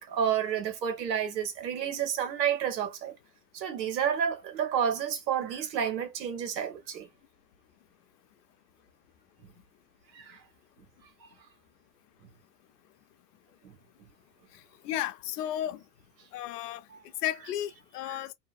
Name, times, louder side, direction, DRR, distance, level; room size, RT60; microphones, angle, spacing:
voice 1, 0.0-3.1 3.5-7.1 10.1-10.4 13.6-13.7 18.1-18.2, right 8 dB, 80° right, 1.0 m, -30 dB
voice 2, 14.8-15.8 16.3-16.8 17.2-18.3, left 12 dB, 65° left, 0.7 m, -33 dB
2.7 x 2.2 x 2.4 m
hypercardioid pair, 120°, 49 cm